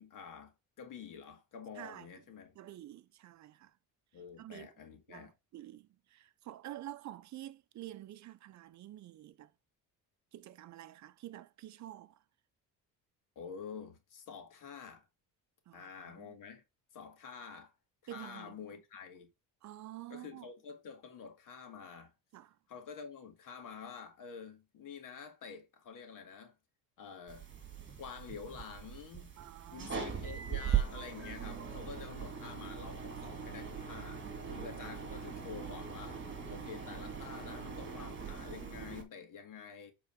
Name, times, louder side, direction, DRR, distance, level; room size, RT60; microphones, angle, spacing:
voice 1, 0.0-2.6 4.1-5.3 13.4-15.1 15.7-16.6 16.9-17.7 18.0-19.3 20.1-22.1 22.7-26.6 27.0-27.5 28.0-29.3 29.7-36.2 36.5-39.9, left 6 dB, 55° left, 2.1 m, -48 dB
voice 2, 1.8-2.1 2.6-3.7 4.4-4.7 5.1-9.5 10.3-12.2 15.7-16.4 18.1-18.5 19.6-20.5 22.3-22.5 29.4-30.1 34.4-34.6, right 13 dB, 50° right, 0.6 m, -49 dB
sound 1, 27.3-39.0, right 8 dB, 30° right, 2.2 m, -40 dB
8.2 x 3.9 x 4.6 m
cardioid pair, 140°, 38 cm